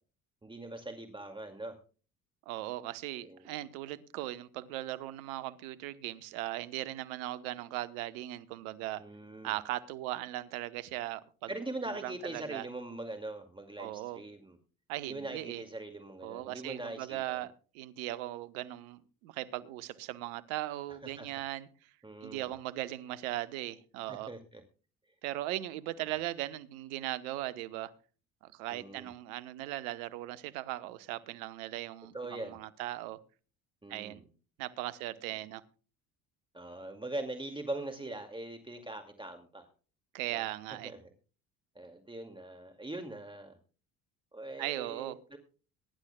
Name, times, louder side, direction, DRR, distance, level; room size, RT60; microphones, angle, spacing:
voice 1, 0.4-1.8 3.2-3.5 9.0-9.5 11.5-14.6 15.1-17.4 21.0-21.3 22.0-22.5 24.1-24.6 28.7-29.1 32.1-32.6 33.8-34.2 36.5-39.7 40.3-41.0 41.8-43.6 44.3-45.4, right 2 dB, 10° right, 5 dB, 2.2 m, -42 dB
voice 2, 2.5-9.0 9.4-11.5 11.8-12.7 13.8-14.2 14.9-15.6 16.2-21.9 22.2-24.3 25.2-27.9 28.4-33.2 33.9-34.2 34.6-35.6 40.1-40.9 44.6-45.2, right 15 dB, 80° right, 14 dB, 1.1 m, -38 dB
23.0 x 11.5 x 2.3 m, 0.37 s
hypercardioid pair, 60°, 42 cm